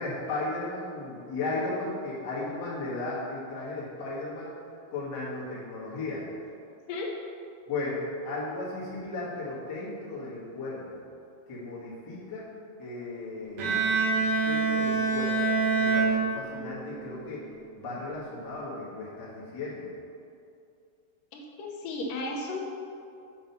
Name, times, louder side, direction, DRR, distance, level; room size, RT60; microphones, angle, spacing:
voice 1, 0.0-4.5 4.9-6.3 7.7-11.0 11.5-12.5 12.8-17.4 17.7-19.9, left 2 dB, 50° left, -7 dB, 1.2 m, -35 dB
Bowed string instrument, 13.6-16.9, right 4 dB, 65° right, 1.8 m, -26 dB
voice 2, 21.3-22.6, left 2 dB, 70° left, -1 dB, 2.3 m, -34 dB
7.3 x 5.4 x 5.7 m, 2.5 s
omnidirectional pair, 4.6 m